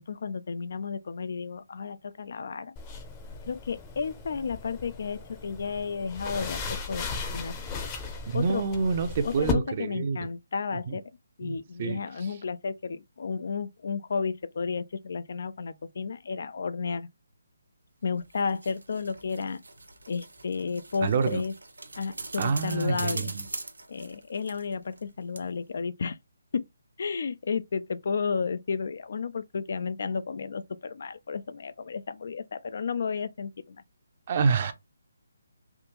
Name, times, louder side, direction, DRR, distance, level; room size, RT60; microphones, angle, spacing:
voice 1, 0.0-2.7 3.5-7.1 7.3-7.5 8.3-8.7 9.2-11.0 11.4-17.1 18.0-19.6 20.1-21.5 22.0-23.3 23.9-26.2 26.5-26.7 27.0-33.8, left 5 dB, 60° left, 0.4 m, -32 dB
sound 1, 2.8-9.5, left 5 dB, 20° left, 0.7 m, -37 dB
voice 2, 8.3-10.3 10.9-11.0 11.4-12.0 21.0-21.4 22.4-23.4 34.3-34.7, right 5 dB, 40° right, 0.6 m, -27 dB
sound 2, 18.1-25.1 25.4-25.5, right 2 dB, 85° right, 0.7 m, -42 dB
3.5 x 2.4 x 3.0 m
figure-of-eight pair, 150°, 0 cm